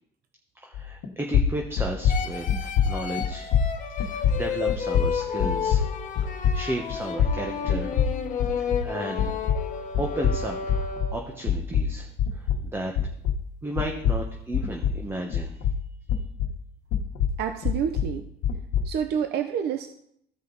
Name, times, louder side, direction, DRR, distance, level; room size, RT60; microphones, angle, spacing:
voice 1, 0.6-3.5 4.0-5.8 6.3-8.1 8.6-9.4 10.0-12.9 13.6-15.6, right 1 dB, 15° right, 1 dB, 1.1 m, -34 dB
sound 1, 0.7-1.1 1.3-8.9 9.2-13.5 13.8-16.6 16.9-19.0, left 7 dB, 85° left, 1.3 m, -25 dB
sound 2, 2.1-11.4, left 6 dB, 50° left, 1.1 m, -32 dB
voice 2, 17.4-18.3 18.8-19.9, right 8 dB, 70° right, 7 dB, 0.7 m, -28 dB
15.0 x 5.2 x 4.0 m, 0.70 s
cardioid pair, 110°, 17 cm